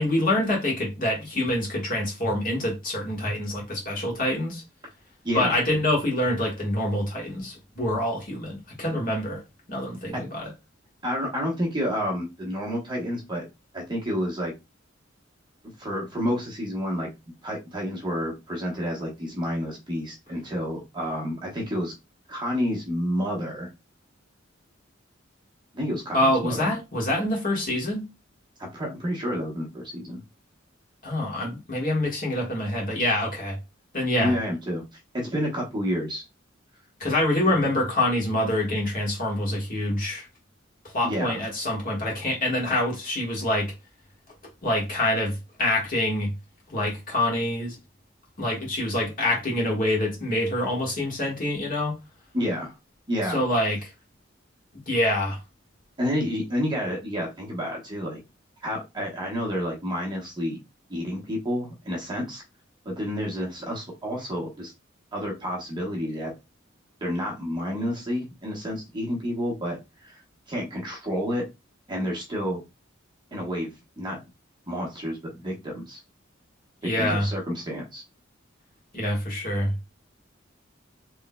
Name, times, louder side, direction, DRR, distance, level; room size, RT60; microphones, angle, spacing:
voice 1, 0.0-4.6 5.3-9.4 9.7-10.5 26.1-28.0 31.0-33.6 33.9-34.4 37.0-40.3 40.8-43.7 44.6-46.3 46.7-47.8 48.4-52.0 53.3-53.9 54.9-55.4 76.8-77.3 78.9-79.7, left 1 dB, 45° left, 1.5 m, -26 dB
voice 2, 5.2-5.6 10.1-10.3 11.0-13.4 13.7-14.5 15.8-17.1 17.4-21.9 22.3-23.7 25.7-26.7 28.6-30.2 34.2-34.8 35.1-36.2 41.0-41.4 52.3-52.7 53.1-53.4 56.0-58.2 58.6-60.6 60.9-62.4 62.8-64.7 65.1-66.3 67.0-70.2 70.5-71.4 71.9-72.6 73.3-74.2 74.7-76.0 76.8-78.0, equal, 25° right, 1.1 m, -29 dB
3.6 x 3.1 x 2.2 m
head